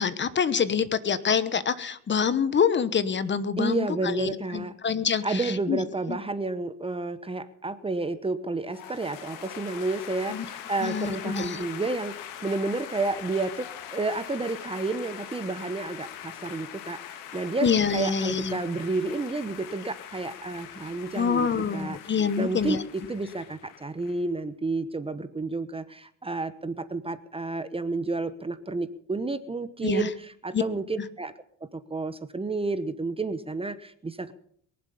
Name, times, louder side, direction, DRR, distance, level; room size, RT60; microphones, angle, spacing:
voice 1, 0.0-5.8 6.1-6.2 10.3-10.4 10.8-11.7 17.6-18.6 21.1-22.8 29.8-30.1 30.5-30.6, left 6 dB, 35° left, 14 dB, 1.2 m, -26 dB
voice 2, 3.6-4.7 5.2-31.3 31.7-34.3, right 3 dB, 15° right, 13 dB, 1.0 m, -31 dB
sound 1, 8.7-24.2, left 10 dB, 85° left, 1.9 m, -42 dB
22.5 x 7.8 x 7.0 m, 0.63 s
cardioid pair, 100°, 32 cm